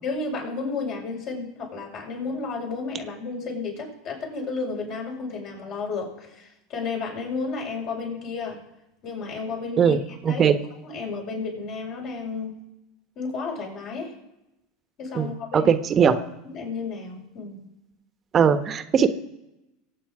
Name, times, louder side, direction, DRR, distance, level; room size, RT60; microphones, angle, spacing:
voice 1, 0.0-8.6 9.0-10.4 10.8-12.6 13.2-14.1 15.0-15.7 16.4-17.7, left 4 dB, 55° left, 0 dB, 5.9 m, -32 dB
voice 2, 10.2-10.5 15.1-16.2 18.3-19.1, right 7 dB, 35° right, 10 dB, 1.1 m, -19 dB
23.5 x 8.9 x 4.9 m, 0.93 s
hypercardioid pair, 90°, 0 cm